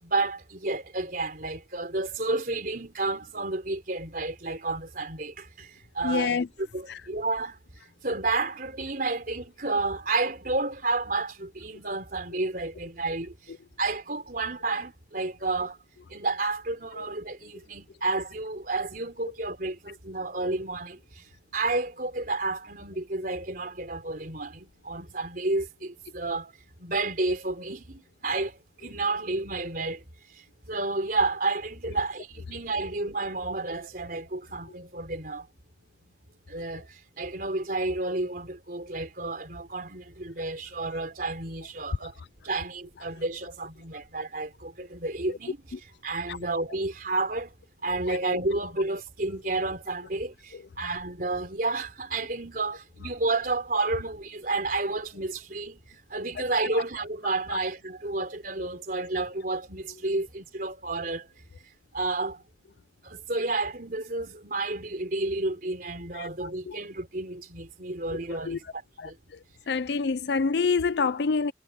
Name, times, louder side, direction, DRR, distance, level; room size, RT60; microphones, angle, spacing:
voice 1, 0.0-6.3 6.7-7.6 8.0-13.3 13.8-15.8 16.1-21.2 21.5-26.5 26.8-30.0 30.3-35.5 36.5-42.1 42.4-45.6 46.0-47.5 47.8-55.8 56.1-61.3 61.9-62.4 63.0-69.2, right 3 dB, 55° right, 3.9 m, -31 dB
voice 2, 6.0-6.5 6.9-7.0 17.0-17.1 45.7-45.8 46.3-46.4 48.1-48.4 56.7-56.8 57.5-57.6 66.1-66.3 66.7-66.8 68.3-68.6 69.0-69.4 69.7-71.5, left 5 dB, 70° left, 0.5 m, -27 dB
head